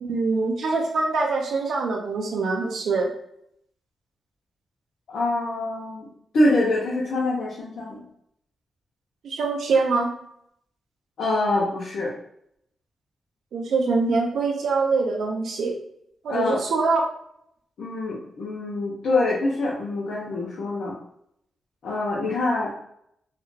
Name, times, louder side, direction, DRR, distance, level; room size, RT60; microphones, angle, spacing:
voice 1, 0.0-3.1 9.2-10.1 13.5-15.7 16.2-17.0, right 4 dB, 80° right, 1 dB, 0.4 m, -24 dB
voice 2, 5.1-6.1 6.3-8.0 11.2-12.1 16.3-16.6 17.8-21.0 21.8-22.7, left 2 dB, 70° left, -6 dB, 0.6 m, -25 dB
2.3 x 2.1 x 3.2 m, 0.73 s
cardioid pair, 100°, 0 cm